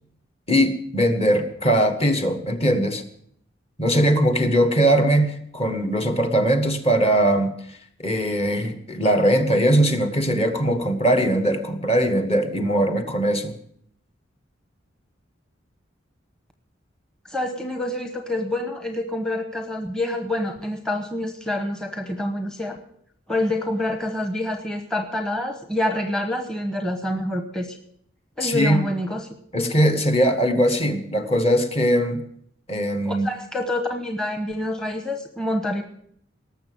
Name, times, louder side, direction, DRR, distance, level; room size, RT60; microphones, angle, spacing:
voice 1, 0.5-3.0 3.8-13.6 28.4-28.8 29.5-32.2 32.7-33.3, right 1 dB, 30° left, 8 dB, 1.4 m, -20 dB
voice 2, 17.3-22.8 23.3-27.8 28.4-29.3 33.1-35.8, left 1 dB, 5° left, 6 dB, 1.0 m, -27 dB
19.0 x 7.0 x 7.7 m, 0.68 s
head